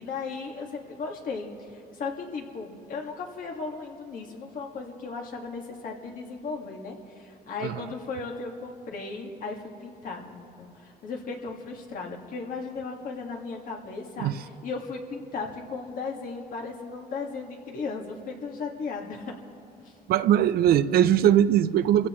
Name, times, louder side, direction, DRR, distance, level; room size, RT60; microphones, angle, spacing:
voice 1, 0.0-19.4 19.8-19.9, left 4 dB, 55° left, 1 dB, 2.0 m, -36 dB
voice 2, 20.1-22.1, right 10 dB, 65° right, 13 dB, 0.5 m, -20 dB
27.5 x 16.0 x 3.1 m, 2.8 s
cardioid pair, 110°, 17 cm